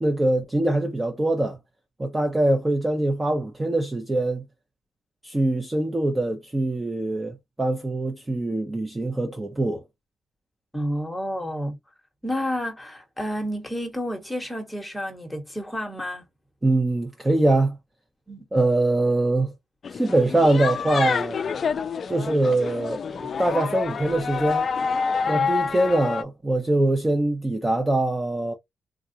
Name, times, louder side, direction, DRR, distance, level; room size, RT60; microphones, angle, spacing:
voice 1, 0.0-1.6 2.0-4.4 5.2-9.8 16.6-17.8 18.5-19.5 19.9-21.4 22.1-24.7 25.3-28.5, right 2 dB, 15° right, 0.6 m, -23 dB
voice 2, 10.7-11.8 12.2-16.2 18.3-18.5 25.2-25.5, equal, 5° left, 1.1 m, -30 dB
sound 1, 19.8-26.2, left 5 dB, 45° left, 0.3 m, -27 dB
3.6 x 2.3 x 2.7 m
cardioid pair, 110°, 0 cm